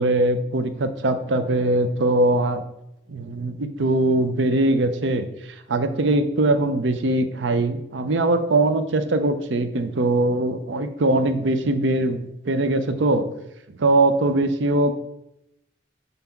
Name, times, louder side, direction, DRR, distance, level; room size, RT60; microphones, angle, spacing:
voice 1, 0.0-2.6 3.1-5.3 5.7-13.3 13.8-14.9, right 2 dB, 75° right, 10 dB, 0.6 m, -21 dB
5.7 x 4.0 x 5.8 m, 0.84 s
head